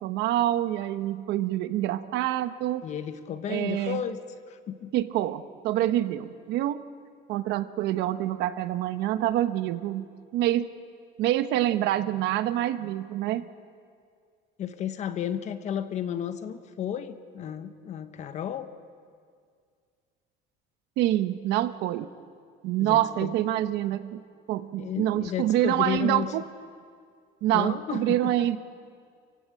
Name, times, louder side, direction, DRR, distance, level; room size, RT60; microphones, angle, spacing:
voice 1, 0.0-2.9 3.5-4.0 4.9-6.8 7.3-10.1 10.3-10.7 11.2-13.5 21.0-22.1 22.6-24.2 24.5-26.4 27.4-28.6, right 13 dB, 70° right, 12 dB, 1.0 m, -26 dB
voice 2, 2.8-4.2 4.5-4.9 14.6-18.7 22.8-23.4 24.8-26.3 27.5-28.5, left 9 dB, 40° left, 10 dB, 1.2 m, -33 dB
27.5 x 16.0 x 9.0 m, 2.1 s
cardioid pair, 175°, 18 cm